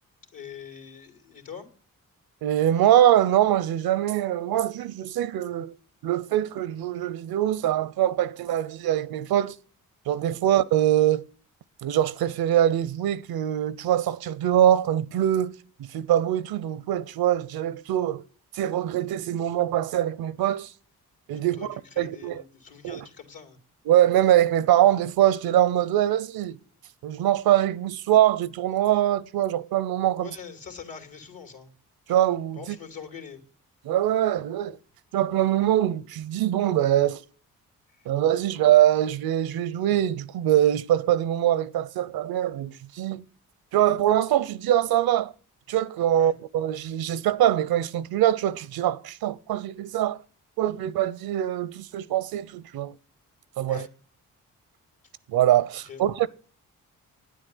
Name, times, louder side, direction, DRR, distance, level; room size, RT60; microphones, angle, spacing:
voice 1, 0.3-1.7 10.4-10.5 21.6-23.6 30.2-31.7 32.6-33.4 46.1-46.3 53.7-53.9 55.9-56.0, left 7 dB, 70° left, 2.9 m, -43 dB
voice 2, 2.4-5.7 6.0-9.6 10.1-11.2 11.8-15.5 15.8-18.2 18.5-20.7 21.3-22.4 22.8-23.1 23.9-26.6 27.0-30.4 32.1-32.8 33.8-34.8 35.1-37.2 38.1-43.2 43.7-45.3 45.7-50.2 50.6-53.0 53.6-53.9 55.3-56.3, right 12 dB, 80° right, 0.7 m, -23 dB
9.7 x 8.2 x 9.3 m
supercardioid pair, 55°, 36 cm